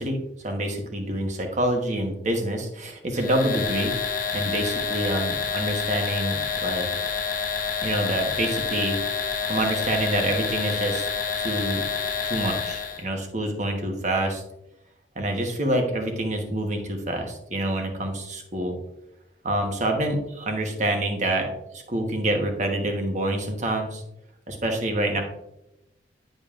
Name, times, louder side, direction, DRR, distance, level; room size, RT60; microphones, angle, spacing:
voice 1, 0.0-3.9 4.3-6.9 7.8-9.0 9.5-11.1 11.4-11.8 12.2-14.4 15.1-18.8 19.4-24.0 24.5-25.2, right 1 dB, 40° right, 3 dB, 1.2 m, -27 dB
sound 1, 3.1-13.0, left 6 dB, 50° left, 1.1 m, -28 dB
10.5 x 5.3 x 2.5 m, 0.87 s
head